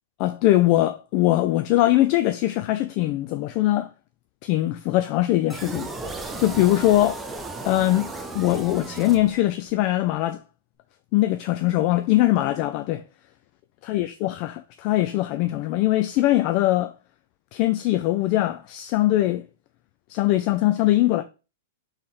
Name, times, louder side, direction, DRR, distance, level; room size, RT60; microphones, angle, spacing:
voice 1, 0.2-3.9 4.4-5.9 6.4-7.2 7.6-8.1 8.3-10.4 11.1-13.0 13.8-16.9 17.5-19.4 20.1-21.2, left 15 dB, 45° left, 0.3 m, -21 dB
sound 1, 5.5-9.7, right 3 dB, 10° right, 0.6 m, -35 dB
3.7 x 3.4 x 4.2 m
hypercardioid pair, 135°, 0 cm